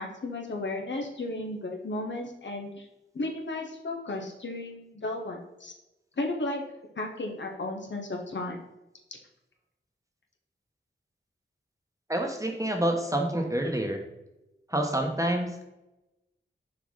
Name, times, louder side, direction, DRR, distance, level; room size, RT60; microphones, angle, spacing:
voice 1, 0.0-2.9 3.1-5.7 6.2-6.6 7.0-8.6, left 2 dB, 65° left, 1 dB, 1.4 m, -34 dB
voice 2, 12.1-14.0 14.7-15.7, right 1 dB, 15° right, 2 dB, 1.2 m, -28 dB
6.4 x 4.8 x 4.1 m, 0.95 s
wide cardioid pair, 75°, 20 cm